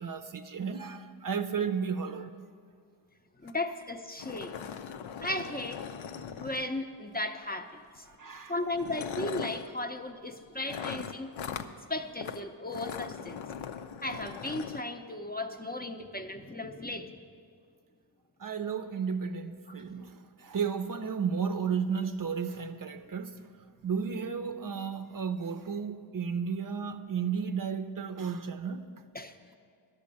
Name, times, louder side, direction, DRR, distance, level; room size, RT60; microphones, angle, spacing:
voice 1, 0.0-2.4 8.1-8.5 18.4-23.5 23.8-28.9, right 6 dB, 45° right, 0.5 m, -33 dB
voice 2, 3.4-4.6 5.2-5.8 6.3-8.1 8.5-11.3 11.9-13.4 14.0-17.2 19.7-19.8 29.1-29.4, left 2 dB, 20° left, 0.5 m, -36 dB
sound 1, 3.5-3.6 3.8-3.9 4.2-7.0 8.0-8.2 8.7-9.7 10.7-11.7 12.2-12.4 12.7-14.8, left 7 dB, 85° left, 0.6 m, -39 dB
11.5 x 6.8 x 8.5 m
wide cardioid pair, 95°, 46 cm